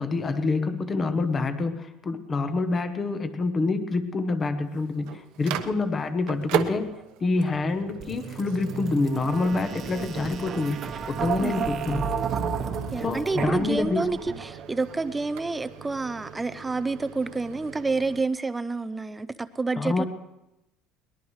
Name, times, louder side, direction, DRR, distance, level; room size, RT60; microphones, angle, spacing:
voice 1, 0.0-6.9 7.2-10.8 11.0-12.0 13.0-14.1 19.8-20.0, left 3 dB, 20° left, 9 dB, 0.9 m, -27 dB
Microwave oven, 4.6-18.2, right 10 dB, 70° right, 1.0 m, -38 dB
sound 1, 8.0-14.7, right 6 dB, 30° right, 1.1 m, -32 dB
voice 2, 12.9-20.0, right 3 dB, 10° right, 13 dB, 0.5 m, -29 dB
22.0 x 20.0 x 3.2 m, 0.92 s
cardioid pair, 170°, 0 cm